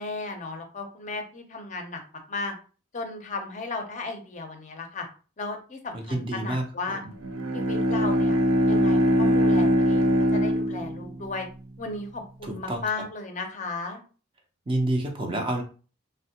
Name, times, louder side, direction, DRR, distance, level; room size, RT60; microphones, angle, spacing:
voice 1, 0.0-2.0 2.3-2.5 2.9-5.1 5.4-7.0 7.5-8.4 8.6-11.5 11.8-14.0, left 3 dB, 35° left, 4 dB, 0.5 m, -35 dB
voice 2, 5.9-7.0 12.4-12.8 14.7-15.6, right 1 dB, 25° right, 3 dB, 0.5 m, -28 dB
Bowed string instrument, 7.1-11.5, equal, 80° right, 0.4 m, -22 dB
3.5 x 2.0 x 2.8 m, 0.37 s
head